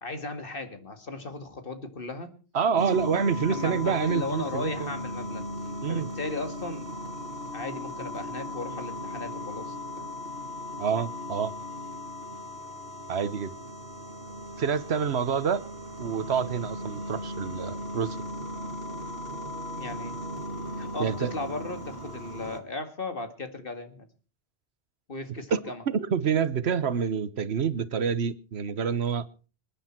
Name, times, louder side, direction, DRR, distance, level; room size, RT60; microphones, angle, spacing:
voice 1, 0.0-2.3 2.7-3.0 3.3-5.4 5.9-6.9 7.5-10.1 19.7-20.2 20.7-24.1 25.1-25.8, left 3 dB, 60° left, 8 dB, 2.2 m, -36 dB
voice 2, 2.5-4.9 5.8-6.1 10.8-11.5 13.1-13.6 14.6-15.6 16.0-18.2 21.0-21.3 25.5-25.6 25.9-29.3, right 7 dB, 85° right, 15 dB, 1.3 m, -27 dB
sound 1, 2.8-22.6, left 1 dB, 65° right, 2.3 m, -37 dB
26.5 x 10.0 x 4.4 m, 0.37 s
omnidirectional pair, 1.1 m